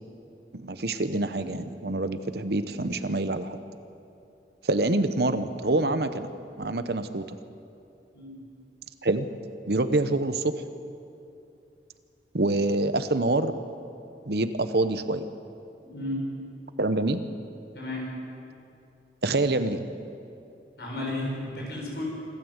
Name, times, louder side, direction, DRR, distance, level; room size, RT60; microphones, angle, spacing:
voice 1, 0.5-3.6 4.7-6.3 6.6-7.2 9.0-9.3 9.7-10.5 12.3-13.5 14.3-15.2 16.8-17.2 19.2-19.8, right 2 dB, 60° right, 11 dB, 1.0 m, -26 dB
voice 2, 15.8-16.2 17.7-18.1 20.8-22.1, left 1 dB, 65° left, -3 dB, 7.1 m, -33 dB
26.5 x 13.0 x 8.1 m, 2.7 s
head